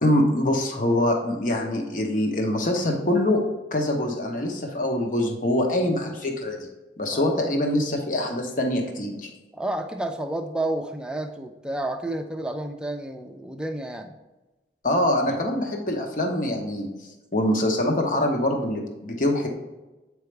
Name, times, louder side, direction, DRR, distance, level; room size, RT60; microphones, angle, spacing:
voice 1, 0.0-3.4 3.7-6.7 7.0-9.3 14.8-16.9 17.3-19.5, left 1 dB, 50° left, 2 dB, 1.0 m, -24 dB
voice 2, 9.5-14.1 15.3-15.4, right 1 dB, 5° right, 5 dB, 0.5 m, -30 dB
8.1 x 4.8 x 3.3 m, 1.1 s
head